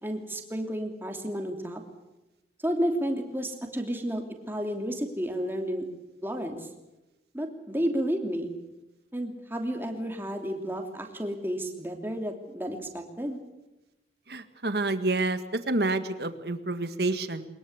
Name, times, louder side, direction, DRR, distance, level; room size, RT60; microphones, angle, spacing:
voice 1, 0.0-1.8 2.6-5.9 6.2-6.7 7.3-8.5 9.1-13.4, equal, 10° right, 3 dB, 2.9 m, -31 dB
voice 2, 14.3-15.4 15.7-17.5, right 2 dB, 65° right, 10 dB, 1.8 m, -28 dB
22.0 x 21.5 x 8.1 m, 1.0 s
head